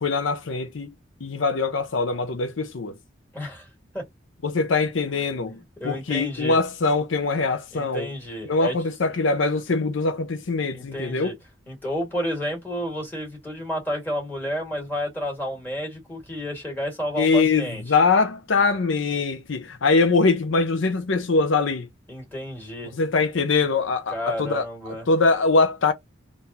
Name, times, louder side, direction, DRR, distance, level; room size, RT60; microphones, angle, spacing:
voice 1, 0.0-0.9 1.2-3.0 4.4-5.6 5.8-8.1 8.5-11.4 17.2-21.9 22.9-24.6 25.1-25.9, left 3 dB, 85° left, 0.6 m, -22 dB
voice 2, 3.3-3.7 3.9-4.0 5.1-6.6 7.7-8.8 10.7-11.3 11.7-17.8 22.1-22.9 24.1-25.1, equal, 10° left, 1.9 m, -31 dB
3.8 x 2.5 x 4.1 m
head